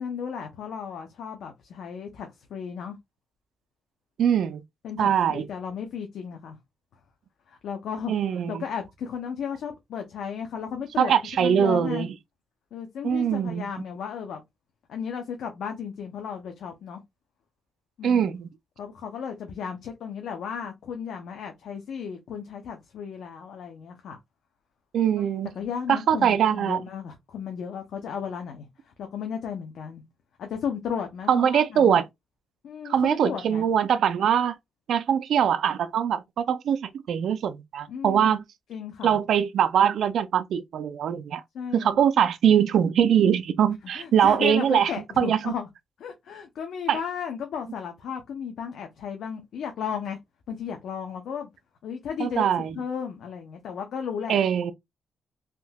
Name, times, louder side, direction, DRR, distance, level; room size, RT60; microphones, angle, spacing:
voice 1, 0.0-3.0 4.8-6.6 7.5-8.1 8.5-12.1 12.7-14.4 14.9-17.0 18.0-18.4 18.8-24.2 25.6-30.0 30.4-32.0 32.6-33.7 37.9-38.4 38.7-39.2 41.5-41.9 43.9-45.7 46.0-50.2 50.5-51.5 51.8-52.4 52.7-54.4, left 7 dB, 80° left, 0.6 m, -34 dB
voice 2, 4.2-4.6 5.0-5.5 8.1-8.6 11.0-12.1 13.0-13.7 18.0-18.5 24.9-25.5 25.9-26.8 31.3-32.0 32.8-34.6 34.9-38.4 39.0-41.4 41.7-44.9 45.2-45.5 46.9-47.0 52.2-52.8 54.3-54.7, right 8 dB, 75° right, 0.4 m, -22 dB
3.6 x 2.6 x 2.3 m
cardioid pair, 85°, 0 cm